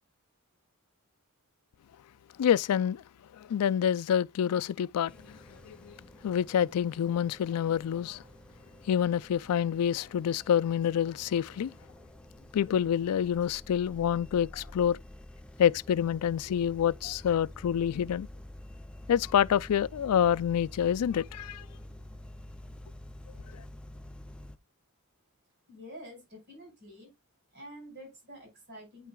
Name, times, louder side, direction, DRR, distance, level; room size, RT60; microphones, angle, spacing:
voice 1, 2.4-3.0 3.4-6.0 6.2-8.2 8.8-11.7 12.5-15.0 15.6-18.3 19.1-21.6 23.5-23.6, left 9 dB, 85° left, 0.3 m, -27 dB
sound 1, 5.1-24.6, left 1 dB, 5° left, 0.4 m, -49 dB
voice 2, 25.7-27.1 27.5-29.1, equal, 50° right, 5.0 m, -48 dB
9.4 x 5.7 x 2.3 m
head